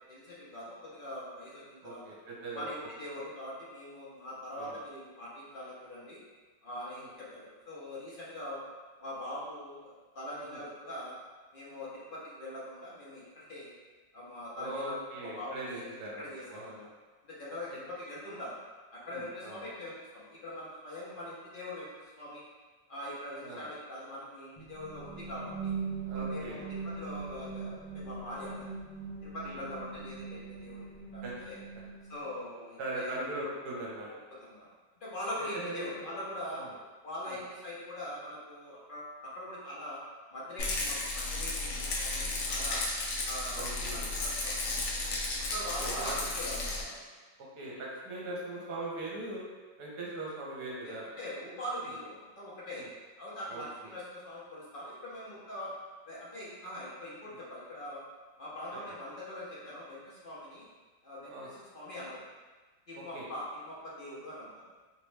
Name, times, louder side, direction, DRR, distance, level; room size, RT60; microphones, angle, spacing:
voice 1, 0.1-2.0 2.5-6.2 6.6-8.7 9.0-11.2 11.5-13.7 14.1-15.9 16.2-16.9 17.3-18.5 18.9-22.4 22.9-25.7 26.1-28.7 29.2-30.9 31.1-31.6 32.1-33.1 34.3-34.7 35.0-36.6 37.0-40.0 40.3-42.8 43.2-44.8 45.3-46.1 46.3-47.0 50.8-52.8 53.2-55.7 56.1-58.0 58.4-60.7 61.0-62.2 62.9-64.6, left 1 dB, 50° left, -7 dB, 0.6 m, -42 dB
voice 2, 1.8-2.7 4.5-4.8 6.9-7.1 10.4-10.6 14.6-16.9 19.1-19.6 23.4-23.7 26.1-26.6 29.4-29.6 31.2-31.3 32.8-34.1 35.5-36.1 36.5-36.7 37.2-37.4 40.7-40.9 43.5-44.0 45.8-46.2 47.4-49.4 49.8-51.0 52.7-52.9 53.5-53.9 57.2-57.4 61.3-61.5 62.9-63.3, right 2 dB, 65° right, -4 dB, 1.2 m, -40 dB
sound 1, 24.6-32.4, right 4 dB, 90° left, 1.4 m, -40 dB
Rattle, 40.6-46.8, left 2 dB, 70° left, 1.1 m, -34 dB
3.2 x 3.0 x 3.2 m, 1.3 s
omnidirectional pair, 1.9 m